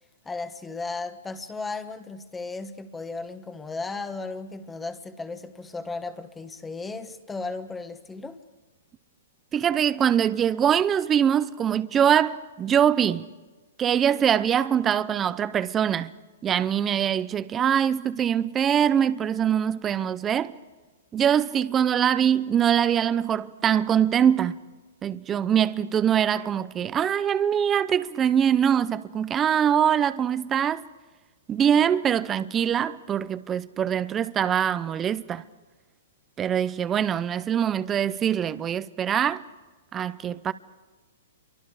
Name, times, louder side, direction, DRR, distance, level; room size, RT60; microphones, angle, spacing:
voice 1, 0.2-8.4, left 3 dB, 10° left, 1.2 m, -35 dB
voice 2, 9.5-13.3 13.8-16.1 16.4-20.5 21.1-24.6 25.0-30.8 31.5-35.4 36.4-39.4 39.9-40.5, right 9 dB, 15° right, 0.6 m, -23 dB
28.0 x 24.0 x 4.9 m
hypercardioid pair, 155°, 0 cm